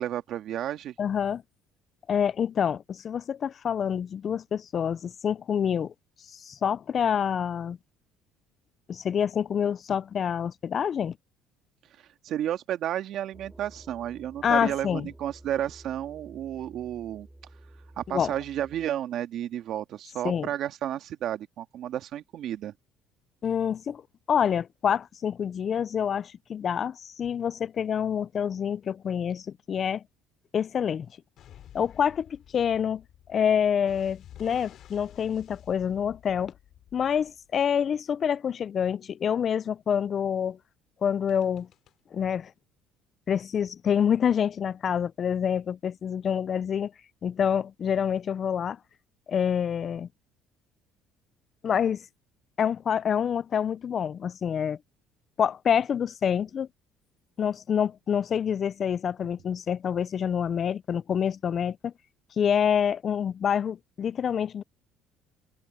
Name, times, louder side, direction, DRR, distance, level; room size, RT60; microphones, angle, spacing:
voice 1, 0.0-0.9 12.2-17.3 18.0-22.7, right 11 dB, 60° right, 2.0 m, -32 dB
voice 2, 1.0-1.4 2.1-5.9 6.3-7.8 8.9-11.2 14.4-15.1 18.1-18.3 20.2-20.5 23.4-24.0 24.3-30.0 30.5-31.1 31.7-33.0 33.3-36.5 36.9-40.6 41.0-41.7 42.1-42.5 43.3-46.9 47.2-48.8 49.3-50.1 51.6-52.1 52.6-54.8 55.4-56.7 57.4-61.9 62.4-64.6, left 8 dB, 40° left, 0.4 m, -27 dB
sound 1, 13.3-18.9, right 1 dB, 10° right, 3.5 m, -51 dB
sound 2, 31.4-37.7 41.3-41.9, left 11 dB, 60° left, 3.5 m, -51 dB
cardioid pair, 110°, 0 cm